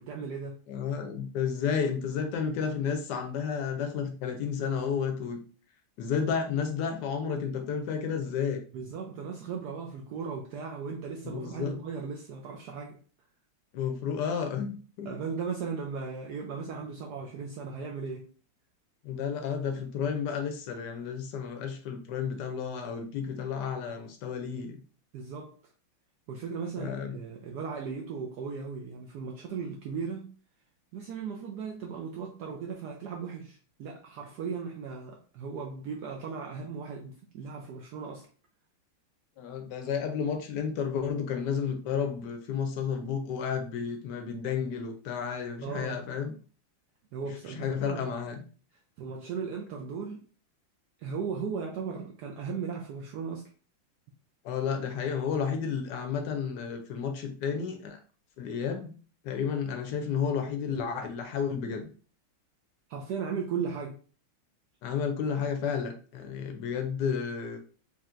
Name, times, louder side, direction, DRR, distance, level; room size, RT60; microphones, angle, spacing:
voice 1, 0.0-0.6 8.7-13.0 15.0-18.3 25.1-25.5 26.3-30.3 30.9-38.3 45.6-46.0 47.1-48.1 49.0-50.2 51.0-53.5 62.9-64.0, right 5 dB, 85° right, 0.9 m, -37 dB
voice 2, 0.7-5.4 6.0-8.6 11.2-11.8 13.7-15.1 19.0-24.8 26.8-27.2 39.4-46.3 47.6-48.4 54.4-58.0 58.4-58.9 59.2-61.9 64.8-67.6, left 6 dB, 70° left, 1.0 m, -32 dB
5.1 x 2.8 x 2.5 m
omnidirectional pair, 2.4 m